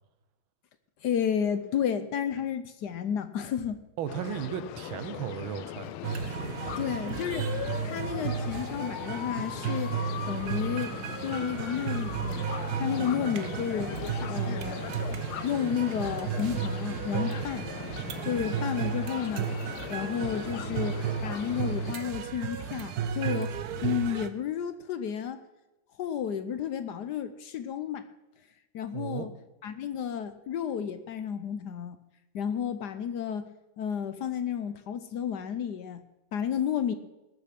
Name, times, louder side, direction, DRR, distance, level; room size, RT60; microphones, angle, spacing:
voice 1, 1.0-3.8 6.8-7.5 7.8-10.9 11.2-12.5 12.7-13.9 14.3-14.9 15.4-17.7 18.2-19.5 19.9-25.4 26.0-28.1 28.7-29.3 29.6-32.0 32.3-36.0 36.3-36.9, left 8 dB, 65° left, 11 dB, 1.2 m, -32 dB
voice 2, 4.0-5.9 28.9-29.3, right 9 dB, 80° right, 12 dB, 1.7 m, -35 dB
sound 1, 4.1-21.9, left 12 dB, 85° left, 1.4 m, -39 dB
sound 2, 6.0-24.3, right 7 dB, 60° right, 1.0 m, -33 dB
19.5 x 6.8 x 6.0 m, 0.99 s
omnidirectional pair, 2.2 m